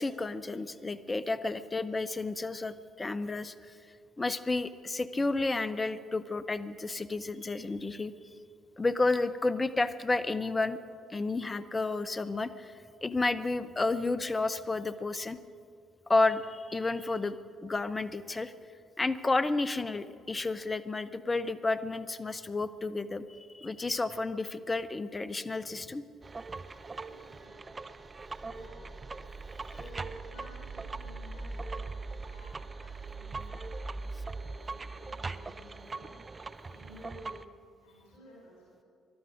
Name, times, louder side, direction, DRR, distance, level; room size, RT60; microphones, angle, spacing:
voice 1, 0.0-3.7 4.2-8.1 8.8-10.8 11.1-12.7 13.0-15.4 16.1-17.4 17.6-18.5 19.0-26.0, left 3 dB, 25° left, 13 dB, 0.8 m, -31 dB
sound 1, 26.2-37.4, right 3 dB, 30° right, 0.6 m, -41 dB
voice 2, 27.0-27.8 28.3-28.8 29.4-36.1 36.6-37.4 37.8-38.7, left 1 dB, 75° left, -5 dB, 4.3 m, -55 dB
21.0 x 12.5 x 5.2 m, 2.3 s
hypercardioid pair, 50°, 0 cm